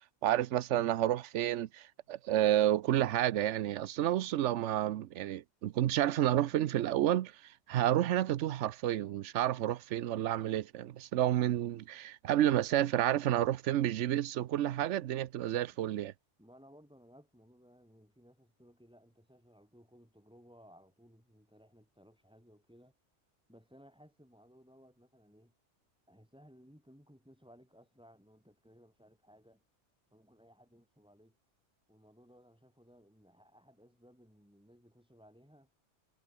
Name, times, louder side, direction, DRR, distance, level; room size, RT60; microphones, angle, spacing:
voice 1, 0.2-16.1, right 12 dB, 75° right, 1.0 m, -30 dB
voice 2, 16.4-23.0 23.5-25.5 26.1-29.6 30.1-31.4 31.9-35.8, equal, 5° right, 8.0 m, -61 dB
omnidirectional pair, 1.2 m